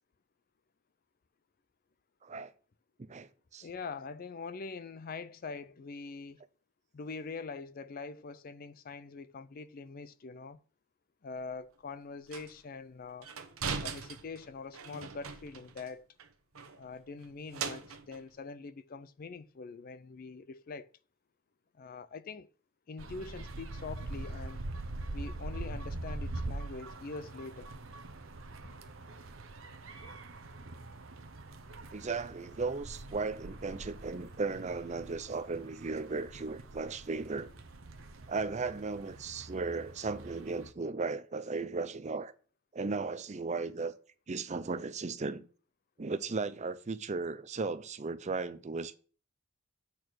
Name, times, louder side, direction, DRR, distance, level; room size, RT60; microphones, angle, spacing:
voice 1, 3.1-3.7 31.9-37.5 38.3-42.3 42.7-43.9 44.3-45.5 46.0-48.9, right 4 dB, 35° right, 0.5 m, -36 dB
voice 2, 3.6-6.4 6.9-10.6 11.2-13.3 13.8-16.0 16.7-20.9 21.7-22.5 22.9-24.6 25.1-27.7, left 4 dB, 45° left, 0.4 m, -44 dB
sound 1, 11.4-11.5 12.3-12.6 13.2-15.9 16.2-16.3 16.5-18.2, right 5 dB, 80° right, 1.0 m, -40 dB
sound 2, 23.0-40.7, right 2 dB, 65° right, 0.9 m, -44 dB
8.5 x 4.6 x 6.0 m
head